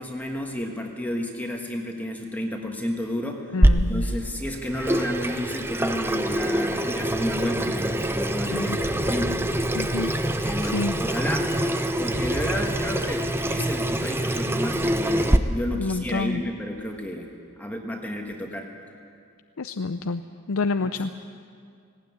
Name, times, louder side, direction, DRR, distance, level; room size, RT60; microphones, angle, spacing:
voice 1, 0.0-9.4 10.1-11.5 12.0-18.7, left 1 dB, 10° left, 1 dB, 1.5 m, -31 dB
voice 2, 3.5-4.1 8.5-8.8 9.7-10.1 10.6-10.9 15.8-16.4 19.6-20.2 20.5-21.2, left 3 dB, 70° left, 9 dB, 0.6 m, -28 dB
Water tap faucet / Sink (filling or washing), 3.6-15.4, right 1 dB, 10° right, 0.7 m, -25 dB
sound 1, 8.8-17.4, right 1 dB, 55° right, 3.8 m, -41 dB
18.5 x 18.0 x 9.5 m, 2.3 s
head